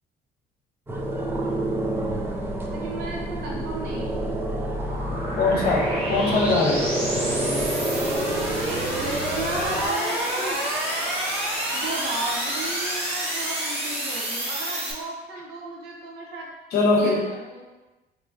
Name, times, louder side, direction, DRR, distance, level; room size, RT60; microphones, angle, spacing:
sound 1, 0.9-9.9, right 1 dB, 15° right, 0.5 m, -28 dB
sound 2, 2.0-14.9, right 1 dB, 35° right, 1.0 m, -29 dB
voice 1, 2.7-4.3 8.6-10.6 11.7-16.5 17.0-17.6, right 2 dB, 85° right, -2 dB, 0.8 m, -34 dB
voice 2, 5.4-7.0 16.7-17.3, left 3 dB, 65° left, 0 dB, 0.7 m, -22 dB
4.0 x 2.9 x 2.5 m, 1.2 s
cardioid pair, 110°, 17 cm